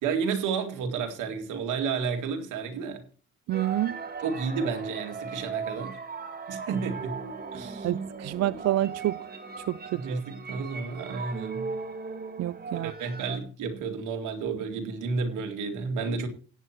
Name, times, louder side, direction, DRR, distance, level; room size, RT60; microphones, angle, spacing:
voice 1, 0.0-3.0 4.2-6.0 6.5-7.2 7.5-7.9 9.9-11.7 12.8-16.3, right 5 dB, 85° right, 2.2 m, -31 dB
sound 1, 3.5-13.4, right 4 dB, 30° right, 2.0 m, -38 dB
voice 2, 3.5-3.9 7.8-9.2 9.9-10.2 12.4-12.9, right 14 dB, 60° right, 0.4 m, -28 dB
17.5 x 9.0 x 2.9 m
cardioid pair, 90°, 30 cm